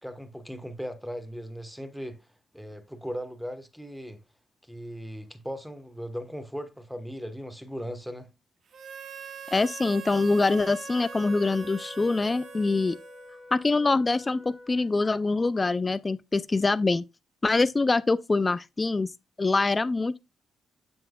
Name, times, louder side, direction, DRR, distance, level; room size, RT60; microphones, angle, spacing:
voice 1, 0.0-2.2 2.5-4.2 4.7-8.3, equal, ahead, 1.1 m, -38 dB
Harmonica, 8.7-13.6, right 6 dB, 65° right, 1.0 m, -43 dB
voice 2, 9.5-13.0 13.5-17.0 17.4-19.1 19.4-20.2, left 3 dB, 25° left, 0.3 m, -24 dB
Wind instrument woodwind instrument, 10.8-15.2, left 2 dB, 40° right, 3.0 m, -48 dB
7.5 x 7.0 x 2.2 m
cardioid pair, 80°, 0 cm